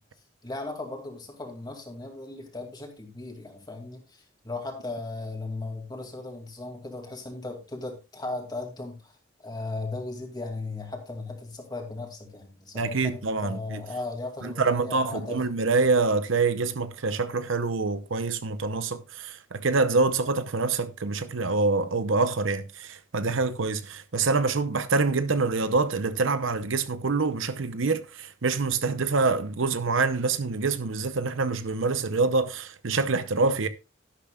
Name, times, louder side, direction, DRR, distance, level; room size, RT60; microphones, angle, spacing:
voice 1, 0.4-9.2 9.4-15.4, left 2 dB, 20° left, 2.5 m, -37 dB
voice 2, 12.7-13.8 14.4-33.7, right 3 dB, 65° right, 0.8 m, -26 dB
12.0 x 11.5 x 2.4 m
head